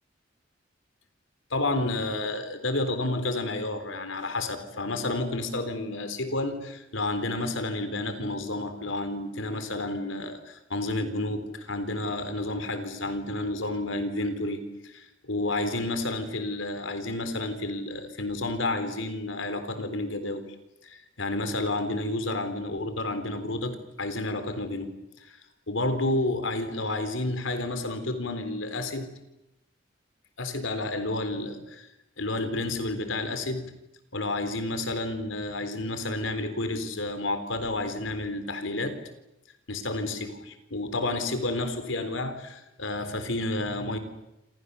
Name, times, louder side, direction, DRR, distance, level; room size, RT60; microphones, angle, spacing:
voice 1, 1.5-20.4 20.8-24.9 25.3-25.4 25.7-29.1 30.4-31.9 32.2-33.7 34.1-39.0 39.7-44.0, left 2 dB, 90° left, 9 dB, 3.9 m, -30 dB
28.0 x 27.5 x 7.0 m, 0.91 s
head